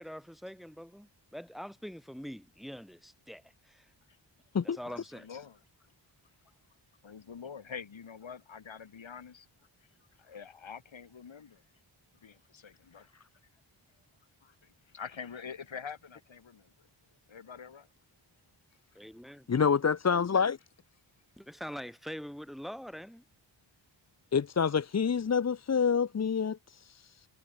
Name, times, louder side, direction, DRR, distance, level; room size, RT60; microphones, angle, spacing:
voice 1, 0.0-3.9 4.6-5.3 19.0-19.5 21.4-23.2, equal, ahead, 3.7 m, -44 dB
voice 2, 4.9-5.6 7.0-9.5 10.2-11.6 12.1-13.2 14.4-16.9 17.3-17.9, left 6 dB, 80° left, 4.8 m, -46 dB
voice 3, 19.5-20.6 24.3-27.3, left 6 dB, 35° left, 0.7 m, -27 dB
wide cardioid pair, 65°, 46 cm